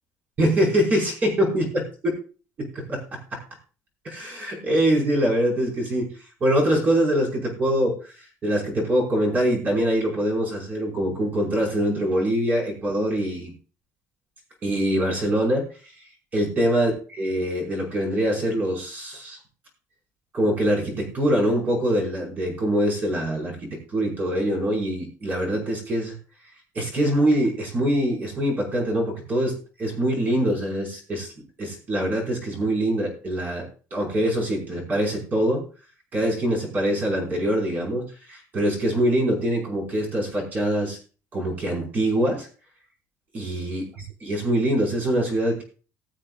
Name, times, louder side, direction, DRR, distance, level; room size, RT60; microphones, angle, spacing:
voice 1, 0.4-1.8 2.6-3.4 4.0-6.1 6.4-8.0 8.4-13.5 14.6-15.7 16.3-19.4 20.3-26.2 26.7-31.3 31.6-35.6 36.1-41.0 41.3-42.5 43.3-45.6, right 1 dB, 25° right, 0 dB, 5.3 m, -24 dB
20.5 x 7.4 x 2.5 m, 0.35 s
cardioid pair, 175°, 6 cm